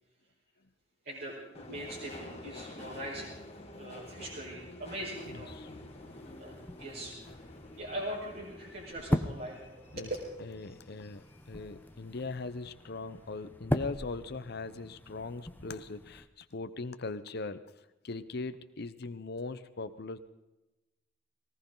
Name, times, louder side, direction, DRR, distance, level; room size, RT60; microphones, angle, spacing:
voice 1, 1.0-3.4 3.8-5.5 6.4-7.1 7.8-10.1, right 1 dB, 55° right, -6 dB, 5.0 m, -41 dB
Subway metro underground, 1.5-12.3 12.6-13.3 13.6-13.7, left 2 dB, 35° left, 2.3 m, -49 dB
sound 1, 5.4-16.3, left 1 dB, 10° left, 0.8 m, -39 dB
voice 2, 10.4-17.6 18.0-20.2, left 3 dB, 60° left, 10 dB, 0.8 m, -40 dB
19.5 x 18.5 x 3.9 m, 1.0 s
head